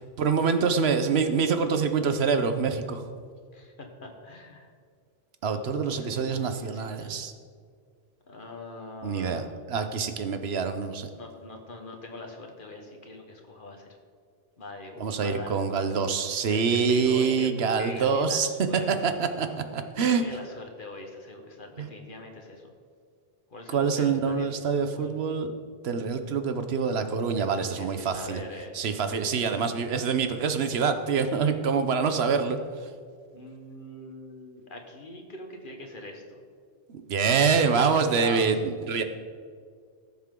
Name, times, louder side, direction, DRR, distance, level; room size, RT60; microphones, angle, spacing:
voice 1, 0.2-3.0 5.4-7.3 9.0-9.4 9.7-11.1 15.0-20.2 21.8-21.9 23.7-25.5 25.8-28.4 28.7-32.9 36.9-39.0, right 5 dB, 80° right, 8 dB, 1.1 m, -26 dB
voice 2, 3.5-4.7 5.5-7.3 8.3-9.6 11.1-14.0 14.6-16.0 16.5-17.5 17.8-19.1 20.2-22.7 23.5-25.1 27.4-28.8 33.3-36.4 37.4-38.6, left 2 dB, 55° left, 3 dB, 1.5 m, -42 dB
17.5 x 7.2 x 3.8 m, 2.1 s
omnidirectional pair, 1.0 m